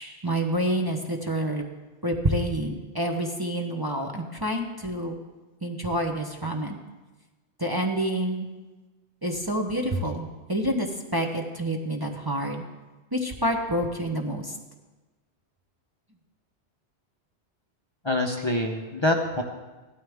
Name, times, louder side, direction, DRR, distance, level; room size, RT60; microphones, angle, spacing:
voice 1, 0.0-1.6 2.0-5.2 5.6-6.8 7.6-8.5 9.2-12.6 13.1-14.5, right 1 dB, 20° right, 2 dB, 0.9 m, -28 dB
voice 2, 18.0-19.4, left 1 dB, 25° left, 1 dB, 0.8 m, -25 dB
16.0 x 13.0 x 3.5 m, 1.2 s
omnidirectional pair, 1.1 m